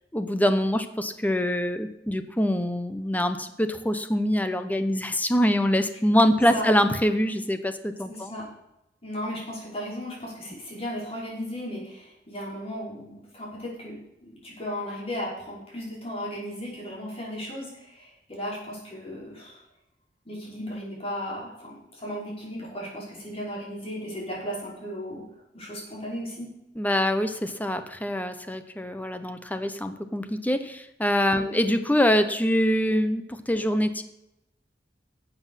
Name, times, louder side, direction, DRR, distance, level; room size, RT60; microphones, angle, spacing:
voice 1, 0.1-8.3 26.8-34.0, equal, 10° left, 9 dB, 0.9 m, -24 dB
voice 2, 8.1-8.4 9.0-19.6 20.3-25.2 25.5-26.5 31.3-31.6, equal, 35° left, -5 dB, 5.4 m, -35 dB
12.0 x 7.9 x 5.7 m, 0.87 s
head